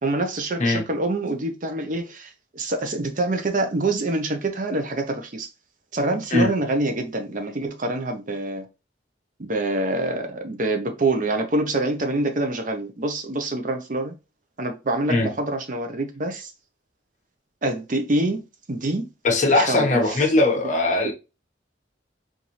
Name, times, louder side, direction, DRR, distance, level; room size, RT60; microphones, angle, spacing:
voice 1, 0.0-5.5 5.9-8.7 9.4-14.1 14.6-16.5 17.6-19.1 19.5-20.3 21.0-21.1, right 2 dB, 45° right, 0.6 m, -26 dB
voice 2, 19.2-21.1, left 2 dB, 40° left, 0.9 m, -20 dB
4.0 x 2.6 x 2.9 m
head